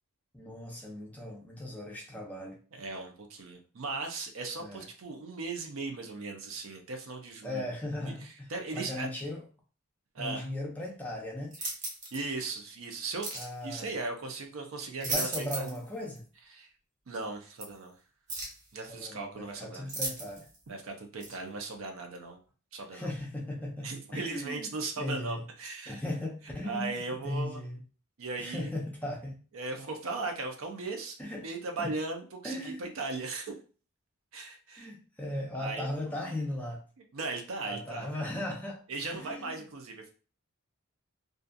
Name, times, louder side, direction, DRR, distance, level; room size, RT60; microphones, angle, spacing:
voice 1, 0.3-2.6 4.6-4.9 7.4-9.4 10.2-11.6 13.3-13.9 15.0-16.2 18.9-20.5 22.9-25.4 25.9-27.0 27.2-27.8 28.4-29.4 31.2-31.5 31.8-31.9 32.4-32.9 34.8-36.8 37.6-38.8 39.1-39.7, left 1 dB, 5° left, -1 dB, 0.4 m, -37 dB
voice 2, 2.7-7.7 8.0-8.1 8.5-9.1 10.1-10.5 12.1-13.3 13.6-15.7 16.5-16.7 17.1-17.9 18.7-19.9 20.7-22.4 22.7-23.1 23.8-26.0 26.6-27.6 28.2-28.7 29.5-31.2 31.4-33.5 34.3-34.9 35.5-35.9 36.2-36.3 37.1-38.1 38.9-40.1, right 3 dB, 65° right, 4 dB, 0.5 m, -37 dB
sound 1, 11.5-12.2 13.2-13.5 14.8-15.8 16.2-16.3 17.6-17.7 18.3-18.6 19.9-20.6 21.2-21.4, right 2 dB, 35° right, 0.7 m, -36 dB
2.5 x 2.3 x 2.5 m, 0.37 s
head